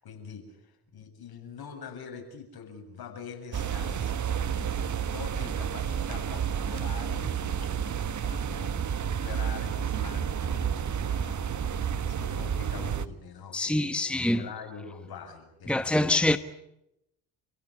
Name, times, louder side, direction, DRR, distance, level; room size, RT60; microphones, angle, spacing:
voice 1, 0.0-16.2, left 6 dB, 60° left, 7.6 m, -44 dB
sound 1, 3.5-13.0, right 8 dB, 40° right, 1.4 m, -30 dB
voice 2, 13.5-14.4 15.7-16.4, left 1 dB, ahead, 1.3 m, -25 dB
29.0 x 16.5 x 9.9 m
supercardioid pair, 65°, 43 cm